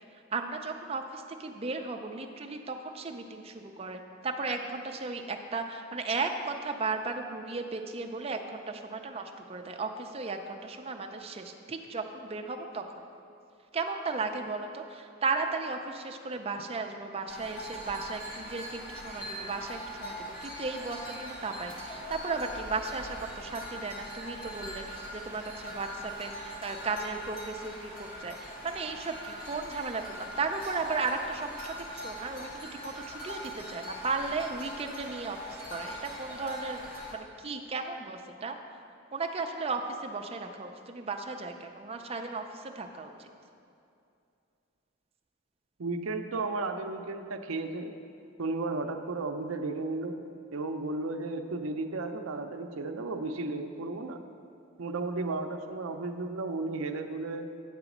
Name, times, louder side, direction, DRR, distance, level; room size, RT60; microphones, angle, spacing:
voice 1, 0.3-12.8 13.7-36.8 37.1-38.6 39.1-43.3, right 4 dB, 30° right, 4 dB, 0.5 m, -35 dB
sound 1, 17.3-37.1, equal, 45° left, 1.6 m, -42 dB
voice 2, 45.8-47.9 48.4-50.2 50.5-54.2 54.8-57.5, right 3 dB, 80° right, 6 dB, 0.6 m, -34 dB
9.6 x 4.0 x 7.2 m, 2.6 s
head